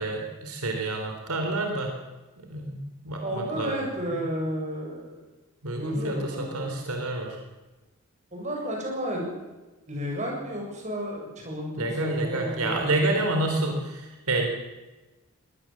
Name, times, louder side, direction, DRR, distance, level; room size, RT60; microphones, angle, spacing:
voice 1, 0.0-1.9 2.4-3.8 5.6-7.4 11.8-14.5, right 2 dB, 80° right, 3 dB, 3.7 m, -28 dB
voice 2, 3.2-5.2 5.8-6.7 8.3-9.3 9.9-13.2, equal, 30° right, -1 dB, 7.2 m, -32 dB
22.5 x 18.5 x 7.4 m, 1.1 s
head